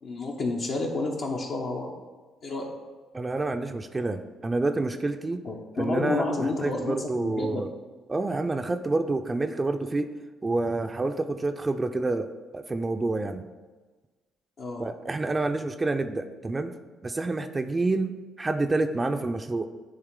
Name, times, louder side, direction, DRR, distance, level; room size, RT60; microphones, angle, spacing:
voice 1, 0.0-1.9 2.4-2.7 5.4-7.6 14.6-14.9, left 2 dB, 60° left, -1 dB, 0.8 m, -30 dB
voice 2, 3.1-5.4 5.8-7.7 8.1-10.1 10.4-13.5 14.8-16.7 17.0-18.1 18.4-19.7, right 2 dB, 25° right, 7 dB, 0.4 m, -28 dB
8.8 x 3.2 x 3.7 m, 1.3 s
hypercardioid pair, 55°, 0 cm